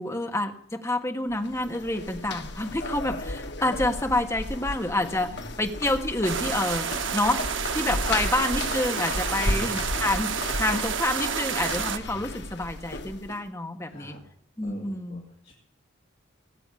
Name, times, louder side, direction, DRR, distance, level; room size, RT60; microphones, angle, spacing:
voice 1, 0.0-7.4 7.7-14.2 14.6-15.2, left 1 dB, 15° left, 5 dB, 1.4 m, -28 dB
sound 1, 1.3-13.4, left 2 dB, 55° left, 1.3 m, -34 dB
voice 2, 5.2-5.6 8.0-8.2 9.4-9.9 13.9-14.2 14.6-15.5, left 2 dB, 35° left, -2 dB, 2.7 m, -43 dB
sound 2, 6.2-12.0, right 7 dB, 70° right, 1.1 m, -30 dB
18.5 x 9.0 x 8.5 m, 0.64 s
head